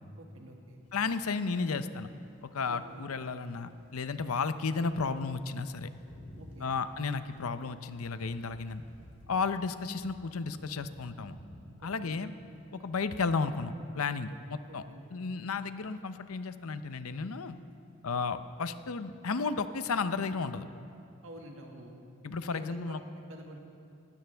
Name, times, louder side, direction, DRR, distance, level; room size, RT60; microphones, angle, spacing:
voice 1, 0.2-0.8 2.7-3.0 6.4-6.7 11.8-12.2 14.7-15.1 21.2-22.0 22.5-23.6, right 1 dB, 70° right, 1 dB, 1.9 m, -49 dB
voice 2, 0.9-2.1 2.4-5.9 6.6-8.8 9.3-11.4 11.8-12.3 12.7-14.8 15.1-17.6 18.0-20.7 22.2-23.0, left 4 dB, 85° left, 11 dB, 0.7 m, -33 dB
sound 1, 0.9-20.5, equal, 35° left, 2.4 m, -57 dB
20.0 x 15.5 x 3.5 m, 2.5 s
head